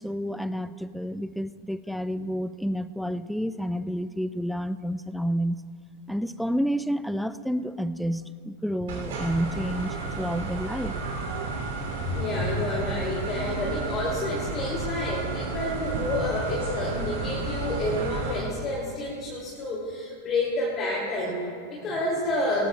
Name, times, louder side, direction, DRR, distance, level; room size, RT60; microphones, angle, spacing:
voice 1, 0.0-5.6 6.1-11.0, equal, ahead, 14 dB, 0.3 m, -30 dB
sound 1, 8.9-18.4, right 3 dB, 55° right, 2.6 m, -32 dB
voice 2, 12.1-22.7, left 1 dB, 25° left, -4 dB, 2.3 m, -29 dB
19.0 x 18.0 x 2.2 m, 2.3 s
figure-of-eight pair, 90°, 0 cm